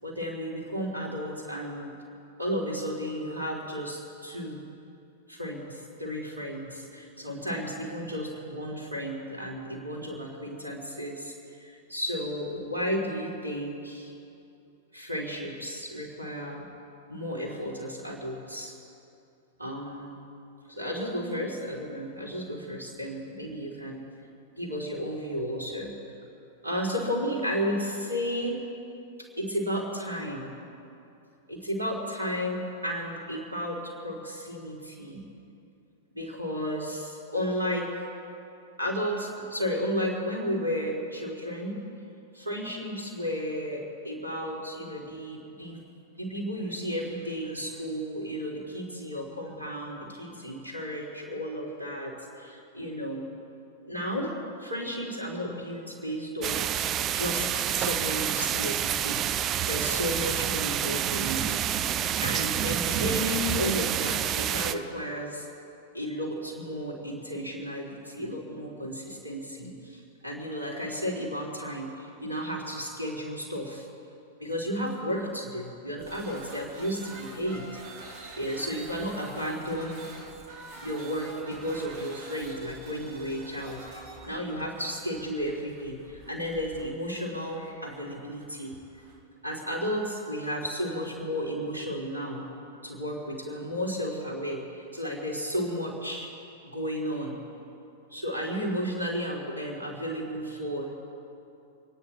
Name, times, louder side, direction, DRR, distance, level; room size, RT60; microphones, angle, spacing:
voice 1, 0.0-1.9 2.4-4.6 5.3-14.1 14.9-16.7 17.1-18.8 19.6-20.2 20.7-24.1 24.5-25.9 26.6-28.6 29.2-30.5 31.5-35.2 36.1-38.0 38.8-41.8 42.3-45.8 46.2-53.3 53.9-56.7 57.1-59.2 59.6-61.6 62.2-65.5 65.9-73.9 74.4-77.8 78.4-80.0 80.8-88.8 89.4-92.4 92.8-96.3 96.6-97.4 98.1-101.0, equal, 85° right, -1 dB, 4.0 m, -33 dB
sound 1, 56.4-64.7, right 10 dB, 30° right, 0.8 m, -28 dB
sound 2, 76.0-89.2, right 2 dB, 50° right, 4.8 m, -47 dB
28.0 x 10.5 x 4.6 m, 2.7 s
figure-of-eight pair, 95°, 0 cm